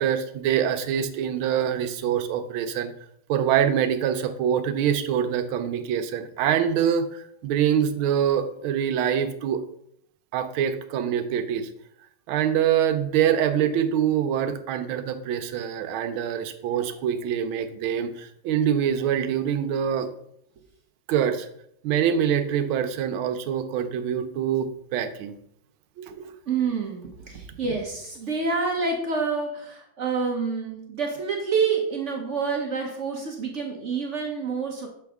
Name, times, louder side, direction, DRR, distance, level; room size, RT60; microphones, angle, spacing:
voice 1, 0.0-2.9 3.3-9.6 10.3-11.7 12.3-20.1 21.1-21.5 21.8-25.3 26.0-26.3, right 9 dB, 80° right, 8 dB, 1.5 m, -25 dB
voice 2, 26.5-34.9, right 5 dB, 60° right, 1 dB, 0.7 m, -27 dB
7.0 x 4.7 x 3.5 m, 0.71 s
omnidirectional pair, 2.3 m